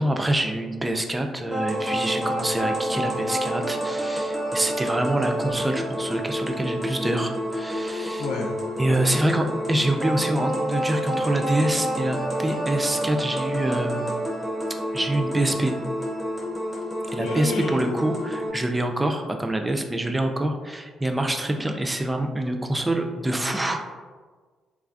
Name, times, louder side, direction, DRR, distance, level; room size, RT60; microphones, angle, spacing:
voice 1, 0.0-8.3 8.8-14.2 14.9-15.8 17.1-23.8, right 1 dB, 15° right, 4 dB, 0.3 m, -26 dB
sound 1, 1.5-18.5, equal, 5° left, 0.8 m, -28 dB
voice 2, 8.2-8.6 8.9-9.2 17.2-17.9, left 2 dB, 90° left, -1 dB, 0.5 m, -30 dB
3.3 x 2.2 x 2.4 m, 1.4 s
cardioid pair, 90°, 0 cm